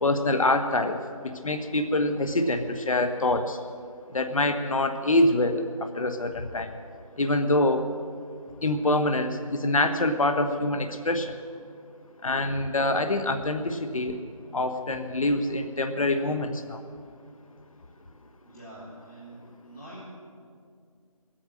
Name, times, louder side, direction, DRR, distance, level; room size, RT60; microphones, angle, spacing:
voice 1, 0.0-3.6 4.1-6.8 7.2-7.9 8.6-11.4 12.2-14.2 14.5-16.8, left 2 dB, 65° left, 7 dB, 1.1 m, -25 dB
voice 2, 18.4-20.1, right 1 dB, 30° left, -9 dB, 4.2 m, -45 dB
19.5 x 8.8 x 7.6 m, 2.2 s
figure-of-eight pair, 170°, 19 cm